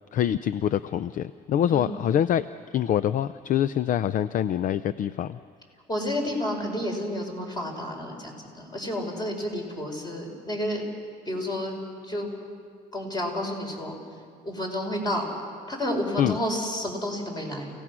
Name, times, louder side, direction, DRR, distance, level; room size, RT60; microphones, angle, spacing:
voice 1, 0.1-2.5 2.7-5.4 16.2-16.4, left 10 dB, 50° left, 15 dB, 0.5 m, -25 dB
voice 2, 5.9-10.8 11.3-11.8 12.0-12.3 12.9-14.0 14.4-15.3 15.7-17.7, left 1 dB, 25° left, 1 dB, 5.1 m, -30 dB
29.5 x 17.5 x 6.2 m, 2.2 s
cardioid pair, 110°, 17 cm